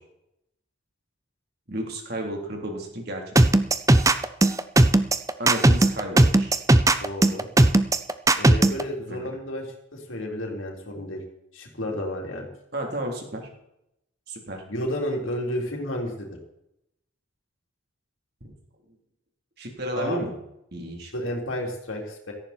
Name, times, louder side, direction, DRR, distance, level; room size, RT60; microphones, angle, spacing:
voice 1, 1.7-3.3 5.4-6.6 9.2-9.3 12.7-13.5 14.3-14.6 19.6-20.3 20.7-21.1, right 1 dB, 50° right, 1 dB, 3.8 m, -32 dB
sound 1, 3.4-8.8, right 2 dB, 15° right, 0.6 m, -17 dB
voice 2, 7.0-7.5 8.4-11.2 11.5-12.5 14.7-16.3 19.9-20.2 21.1-22.3, left 1 dB, 85° left, 0 dB, 3.8 m, -31 dB
17.0 x 14.0 x 4.5 m, 0.82 s
head